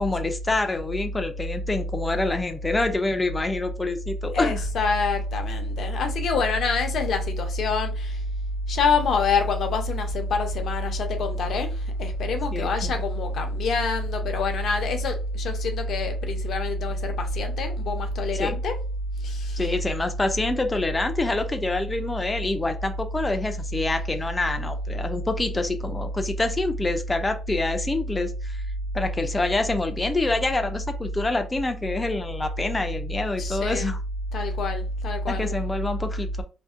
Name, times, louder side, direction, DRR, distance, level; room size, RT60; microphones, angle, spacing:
voice 1, 0.0-4.6 12.5-12.9 18.3-18.5 19.6-28.6 28.9-34.0 35.3-36.4, left 2 dB, 20° left, 0.3 m, -27 dB
voice 2, 4.3-8.2 8.7-18.8 19.2-19.7 33.4-33.9 34.3-35.6, left 3 dB, 70° left, 0.6 m, -25 dB
2.6 x 2.1 x 2.4 m
cardioid pair, 100°, 0 cm